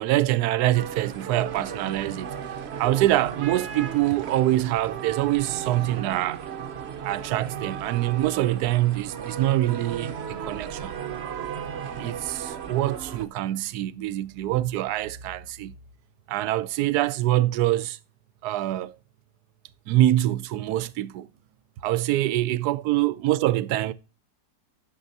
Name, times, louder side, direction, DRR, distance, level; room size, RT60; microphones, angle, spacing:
voice 1, 0.0-2.3 2.8-6.4 7.0-10.9 12.0-15.7 16.3-18.0 18.4-18.9 19.9-21.3 21.8-23.9, right 15 dB, 70° right, 1.1 m, -25 dB
sound 1, 0.7-13.3, right 7 dB, 50° right, 0.8 m, -35 dB
12.5 x 7.3 x 2.7 m
omnidirectional pair, 1.8 m